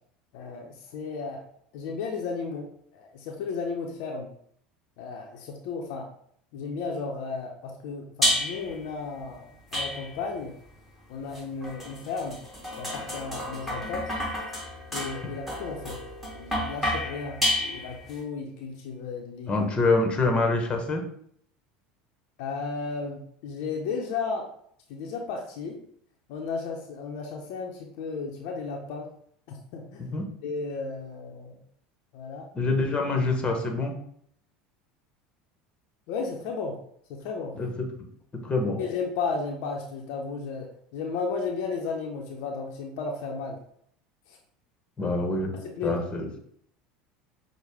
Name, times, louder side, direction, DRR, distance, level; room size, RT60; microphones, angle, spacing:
voice 1, 0.3-1.5 1.7-4.3 5.0-6.1 6.5-10.5 11.1-12.4 12.8-14.1 14.9-16.0 16.3-19.7 22.4-24.5 24.9-25.8 26.3-29.1 29.5-30.1 30.4-31.6 32.1-32.5 36.1-36.8 37.1-37.6 38.8-43.6 44.3-44.4 45.5-46.0, left 4 dB, 65° left, 1 dB, 0.6 m, -34 dB
sound 1, 8.2-8.8 9.7-10.4 11.3-18.2, left 1 dB, ahead, 1.5 m, -30 dB
voice 2, 19.5-21.0 30.1-30.2 32.5-33.9 37.5-37.9 38.3-38.8 45.0-45.5 45.8-46.4, left 3 dB, 25° left, 3 dB, 1.0 m, -25 dB
6.2 x 2.1 x 3.4 m, 0.65 s
hypercardioid pair, 85°, 4 cm